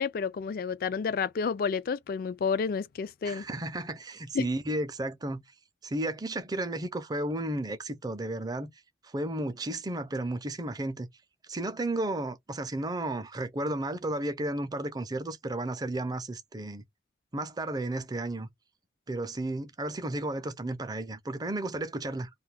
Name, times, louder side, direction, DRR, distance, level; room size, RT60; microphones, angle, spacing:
voice 1, 0.0-3.4 4.3-4.5, left 5 dB, 55° left, 0.3 m, -30 dB
voice 2, 3.2-5.4 5.8-8.7 9.0-11.1 11.5-16.8 17.3-18.5 19.1-22.3, right 1 dB, 20° right, 0.5 m, -33 dB
2.6 x 2.3 x 3.3 m
head